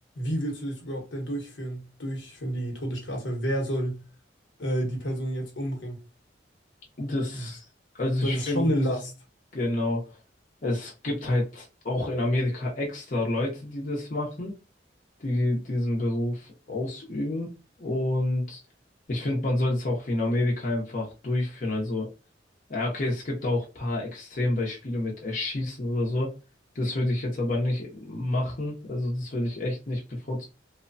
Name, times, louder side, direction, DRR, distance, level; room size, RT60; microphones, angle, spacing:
voice 1, 0.2-4.0 4.6-6.0 7.3-7.5 8.2-9.1, equal, 80° left, 0.9 m, -29 dB
voice 2, 7.0-7.6 8.0-8.7 9.5-10.1 10.6-14.6 15.2-17.5 17.8-18.6 19.1-22.1 22.7-26.3 26.7-30.4, left 1 dB, 45° left, 0.7 m, -28 dB
3.0 x 2.1 x 2.6 m
head